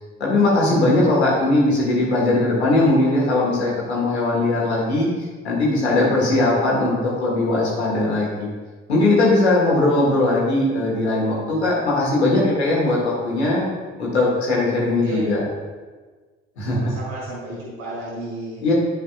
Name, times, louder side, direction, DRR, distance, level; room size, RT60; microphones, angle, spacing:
voice 1, 0.2-5.1 5.4-8.5 8.9-13.6 14.0-15.4 16.6-16.9 18.6-18.7, left 2 dB, 85° left, -5 dB, 1.5 m, -19 dB
voice 2, 16.7-18.6, right 2 dB, 70° right, -6 dB, 1.9 m, -33 dB
10.0 x 5.0 x 2.4 m, 1.4 s
figure-of-eight pair, 45°, 32 cm